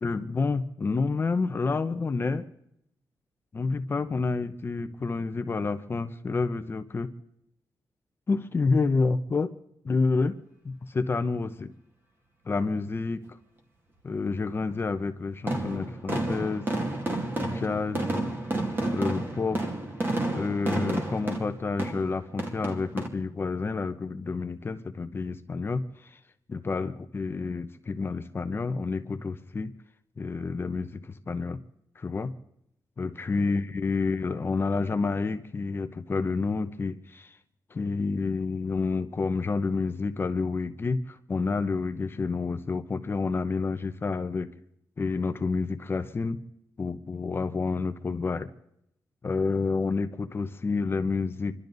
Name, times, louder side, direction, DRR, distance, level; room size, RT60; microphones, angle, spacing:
voice 1, 0.0-2.4 3.5-7.1 8.3-9.5 9.8-10.3 10.6-11.7 12.5-13.2 14.0-16.7 17.4-18.1 18.9-19.6 20.3-26.1 26.5-29.7 30.2-31.6 32.0-32.3 33.0-37.3 37.7-44.5 45.0-46.4 46.8-48.5 49.2-51.5, left 4 dB, 30° left, 8 dB, 0.9 m, -29 dB
sound 1, 15.5-23.1, right 2 dB, 30° right, 2.4 m, -30 dB
27.5 x 12.5 x 4.0 m, 0.75 s
wide cardioid pair, 145°, 7 cm